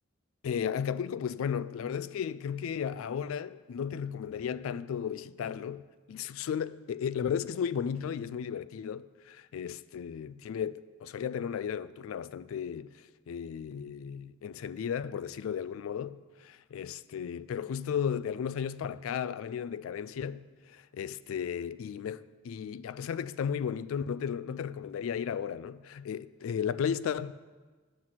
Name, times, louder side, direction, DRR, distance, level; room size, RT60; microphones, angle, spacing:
voice 1, 0.4-27.3, left 7 dB, 70° left, 0.3 m, -35 dB
9.4 x 5.8 x 7.5 m
head